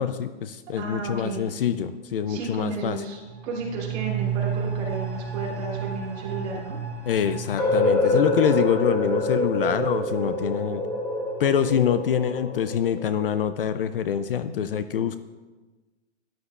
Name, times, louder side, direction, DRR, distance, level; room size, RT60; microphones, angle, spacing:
voice 1, 0.0-3.0 7.1-10.8 11.4-15.2, left 8 dB, 55° left, 12 dB, 0.5 m, -25 dB
voice 2, 0.8-1.4 2.3-6.7 7.8-8.2, right 4 dB, 35° right, -4 dB, 2.9 m, -33 dB
sound 1, 3.0-12.5 12.8-12.9, right 7 dB, 20° right, 1.3 m, -34 dB
sound 2, 7.6-13.4, left 2 dB, 10° left, 0.7 m, -26 dB
13.0 x 10.5 x 2.4 m, 1.2 s
hypercardioid pair, 165°, 35 cm